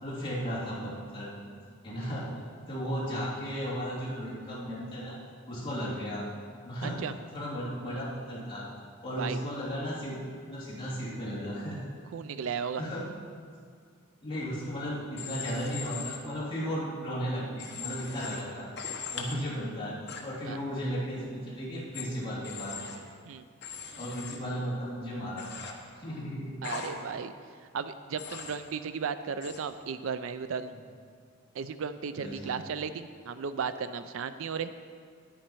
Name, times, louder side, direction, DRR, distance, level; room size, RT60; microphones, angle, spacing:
voice 1, 0.0-1.3 1.8-2.3 2.7-5.2 5.5-6.2 6.6-7.0 7.3-8.7 9.0-10.2 10.4-11.8 12.8-13.1 14.2-18.7 19.1-20.0 20.2-22.8 24.0-26.5 32.2-32.5, equal, 25° left, -9 dB, 2.9 m, -35 dB
voice 2, 6.8-7.1 9.2-9.4 12.1-12.8 20.5-20.6 23.3-23.4 26.6-27.3 27.7-30.7 31.5-34.7, right 6 dB, 65° right, 12 dB, 0.4 m, -35 dB
Human voice / Train, 15.2-16.2 17.6-18.4 18.8-19.3 20.1-20.2 21.9-22.0 22.4-23.0 23.6-24.4 25.4-25.7 26.6-26.9 28.2-28.6 29.4-29.6, left 6 dB, 50° left, 1.1 m, -39 dB
10.0 x 9.7 x 4.5 m, 2.1 s
head